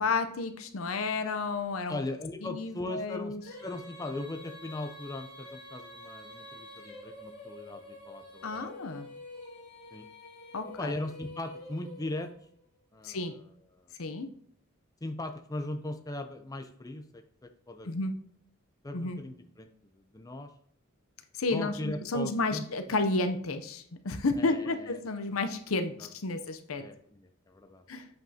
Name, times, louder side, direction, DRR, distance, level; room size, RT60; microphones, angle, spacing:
voice 1, 0.0-2.0 2.4-3.4 8.4-9.1 10.5-10.9 13.0-13.3 13.9-14.3 17.8-18.1 18.9-19.2 21.3-26.9 27.9-28.1, left 3 dB, 90° left, 9 dB, 0.7 m, -31 dB
voice 2, 1.9-3.3 3.6-8.7 9.9-10.1 10.8-12.3 12.9-13.2 13.7-13.9 15.0-17.9 18.8-20.5 21.5-22.6 24.4-25.0 25.3-25.4 26.0-26.1 26.8-27.8, left 2 dB, 20° left, 6 dB, 0.5 m, -39 dB
Female singing, 3.4-12.6, left 1 dB, 50° left, 2.5 m, -47 dB
7.8 x 5.2 x 2.8 m, 0.63 s
head